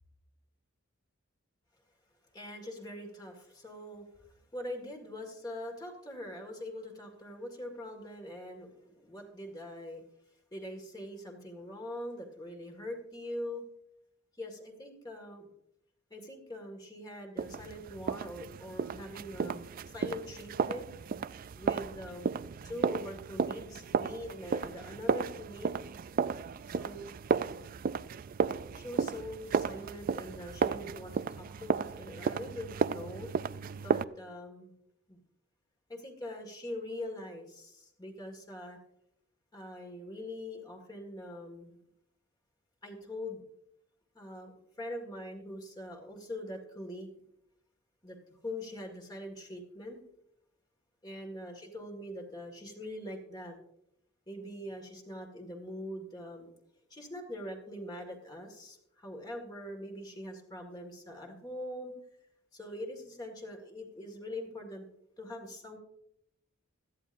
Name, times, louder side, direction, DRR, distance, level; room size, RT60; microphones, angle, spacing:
voice 1, 2.3-10.0 10.5-13.6 14.4-15.5 16.1-20.9 21.5-22.3 22.6-25.8 26.7-27.1 28.7-33.3 33.8-34.7 35.1-35.2 35.9-38.8 39.5-41.8 42.8-43.4 44.1-47.1 48.0-48.2 48.4-50.0 51.0-53.5 54.3-56.5 56.9-61.9 62.5-64.9 65.2-65.8, left 1 dB, 20° left, 2 dB, 1.8 m, -43 dB
sound 1, 17.4-34.0, right 5 dB, 40° right, 0.3 m, -34 dB
17.5 x 13.0 x 2.6 m, 0.77 s
head